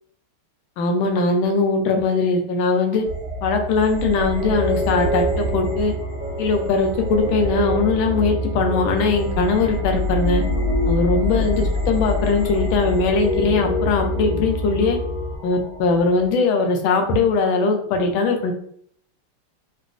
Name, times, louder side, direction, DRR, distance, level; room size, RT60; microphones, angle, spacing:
voice 1, 0.8-3.0 3.4-5.9 6.4-10.4 10.9-15.0 15.4-18.5, left 4 dB, 75° left, 3 dB, 1.3 m, -20 dB
sound 1, 3.0-16.4, equal, 55° right, 1.6 m, -31 dB
sound 2, 4.4-15.4, equal, 10° right, 1.0 m, -25 dB
3.8 x 2.2 x 2.5 m, 0.63 s
omnidirectional pair, 2.4 m